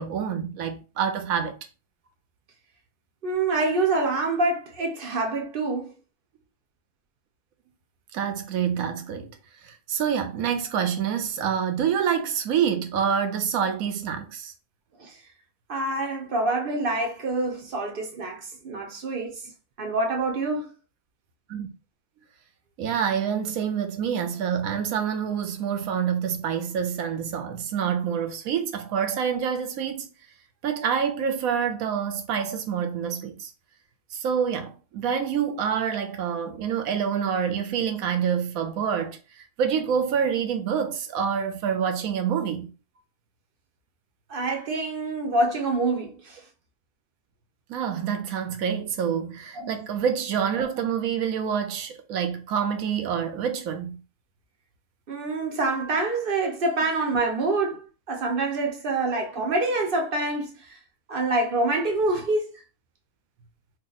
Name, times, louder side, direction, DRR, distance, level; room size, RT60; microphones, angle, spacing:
voice 1, 0.0-1.5 8.1-9.3 9.6-14.5 21.5-21.7 22.8-30.1 30.6-33.5 34.1-39.2 39.6-42.7 47.7-54.0, right 7 dB, 75° right, 1.0 m, -27 dB
voice 2, 3.2-5.9 15.0-15.1 15.7-19.4 19.8-20.7 44.3-46.4 49.6-49.7 55.1-60.8 61.1-62.5, right 2 dB, 50° right, 0.7 m, -26 dB
2.7 x 2.5 x 3.9 m
omnidirectional pair, 1.5 m